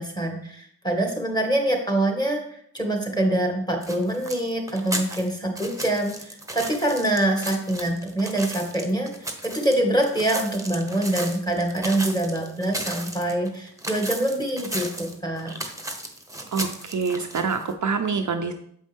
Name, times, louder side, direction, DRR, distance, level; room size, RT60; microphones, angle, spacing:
voice 1, 0.0-15.5, right 1 dB, 10° left, 1 dB, 2.1 m, -25 dB
sound 1, 3.8-17.7, right 1 dB, 10° right, 1.2 m, -35 dB
voice 2, 16.5-18.5, right 5 dB, 50° right, 6 dB, 0.6 m, -26 dB
7.4 x 5.2 x 3.6 m, 0.66 s
cardioid pair, 45°, 39 cm